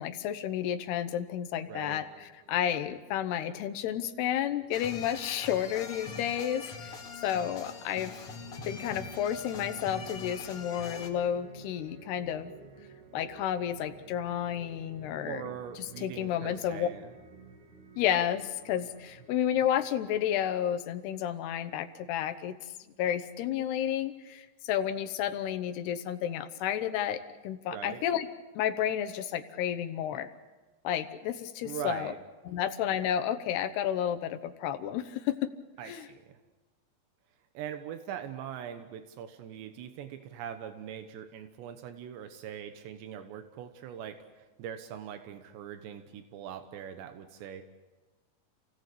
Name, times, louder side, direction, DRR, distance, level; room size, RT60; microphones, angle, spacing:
voice 1, 0.0-7.0 7.2-8.1 8.7-12.5 13.1-15.5 15.8-16.9 18.0-22.6 23.0-28.3 28.6-30.3 30.8-32.1 32.5-35.5 35.9-36.1, left 10 dB, 75° left, 10 dB, 3.0 m, -31 dB
sound 1, 1.7-19.9, right 5 dB, 65° right, 4.3 m, -54 dB
voice 2, 1.7-2.0 15.2-17.1 27.7-28.0 31.6-32.2 35.8-36.4 37.5-47.6, right 9 dB, 85° right, 8 dB, 3.3 m, -42 dB
Pipes and Drums, 4.7-11.1, left 4 dB, 40° left, 2.6 m, -42 dB
29.0 x 17.5 x 8.4 m, 1.2 s
omnidirectional pair, 4.9 m